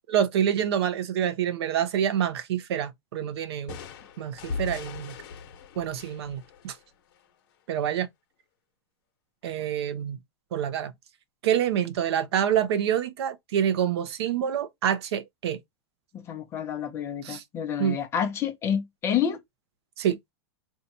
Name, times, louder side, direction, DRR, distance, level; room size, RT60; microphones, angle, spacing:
voice 1, 0.1-3.8 4.2-5.1 5.8-6.8 7.7-8.1 9.4-10.2 10.5-10.9 11.4-15.6 17.2-17.4 17.8-18.0 20.0-20.2, right 9 dB, 70° right, 0.6 m, -27 dB
sound 1, 3.7-7.4, left 4 dB, 50° left, 1.0 m, -39 dB
voice 2, 16.1-19.4, left 8 dB, 20° left, 0.6 m, -29 dB
2.7 x 2.3 x 4.1 m
supercardioid pair, 165°, 14 cm